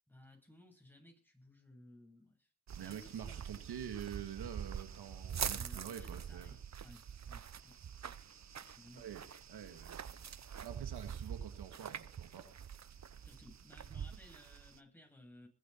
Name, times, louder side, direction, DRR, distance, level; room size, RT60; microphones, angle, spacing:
voice 1, 0.1-2.5 2.7-3.4 5.4-9.1 13.2-15.5, left 1 dB, 5° left, 2 dB, 7.7 m, -59 dB
sound 1, 2.7-14.8, right 8 dB, 45° right, 0.8 m, -45 dB
voice 2, 2.8-6.6 9.0-10.3 10.6-12.5, right 9 dB, 85° right, 7 dB, 1.8 m, -47 dB
22.0 x 8.0 x 4.4 m, 0.37 s
cardioid pair, 50°, 39 cm